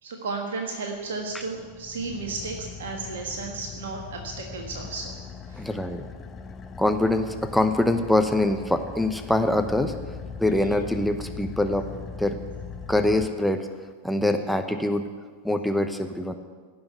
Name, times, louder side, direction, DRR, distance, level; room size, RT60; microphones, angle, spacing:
voice 1, 0.0-5.1 5.5-5.7, right 3 dB, 60° right, 2 dB, 1.5 m, -33 dB
Car / Idling, 1.0-13.9, left 6 dB, 25° left, 0.9 m, -40 dB
voice 2, 5.6-6.0 6.8-9.9 10.4-11.9 12.2-12.4 12.9-13.7 14.0-15.1 15.4-16.3, left 1 dB, ahead, 7 dB, 0.8 m, -24 dB
16.5 x 6.4 x 9.3 m, 1.5 s
figure-of-eight pair, 90°, 0 cm